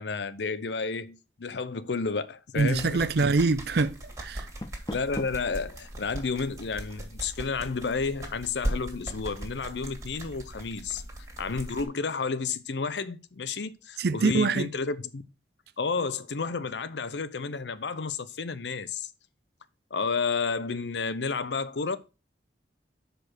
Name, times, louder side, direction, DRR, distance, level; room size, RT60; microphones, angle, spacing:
voice 1, 0.0-3.3 4.9-11.0 11.4-15.2 15.8-19.1 19.9-22.0, left 4 dB, 80° left, 0.7 m, -31 dB
sound 1, 2.6-11.8, right 1 dB, 20° right, 2.1 m, -39 dB
voice 2, 2.6-4.5 14.0-14.7, right 3 dB, 60° right, 0.5 m, -25 dB
Door, 4.3-5.6, left 1 dB, 20° left, 0.5 m, -39 dB
6.4 x 5.2 x 6.1 m
head